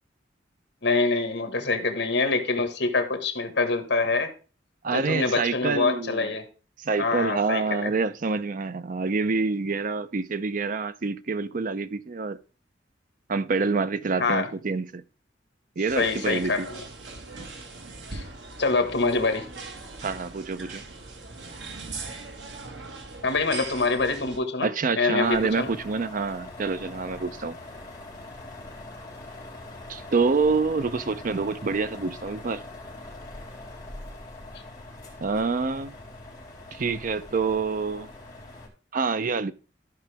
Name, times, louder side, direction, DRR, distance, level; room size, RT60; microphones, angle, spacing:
voice 1, 0.8-4.3 4.9-6.5 7.0-7.9 14.2-14.5 16.0-16.8 18.1-18.2 18.6-19.5 23.2-24.7 25.0-25.7, left 3 dB, 70° left, 1.4 m, -25 dB
voice 2, 4.8-6.3 6.8-12.4 13.3-15.0 15.8-16.7 20.0-20.8 24.6-27.6 29.9-32.6 35.2-35.9 36.7-38.1 38.9-39.5, right 4 dB, 50° right, 0.5 m, -27 dB
sound 1, 15.9-24.4, right 3 dB, 75° right, 1.4 m, -40 dB
sound 2, 25.2-38.7, left 2 dB, 20° left, 3.5 m, -42 dB
13.5 x 5.0 x 3.4 m
head